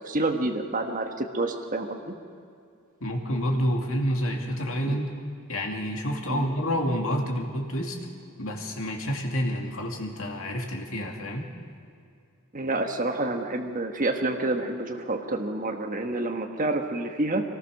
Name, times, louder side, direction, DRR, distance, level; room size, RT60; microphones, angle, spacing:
voice 1, 0.0-2.1 4.9-5.0 6.3-6.5 12.5-17.4, right 2 dB, 40° right, 3 dB, 1.3 m, -28 dB
voice 2, 3.0-5.1 5.5-8.0 8.4-11.5, equal, 65° left, 2 dB, 2.6 m, -28 dB
23.5 x 18.5 x 6.5 m, 2.4 s
head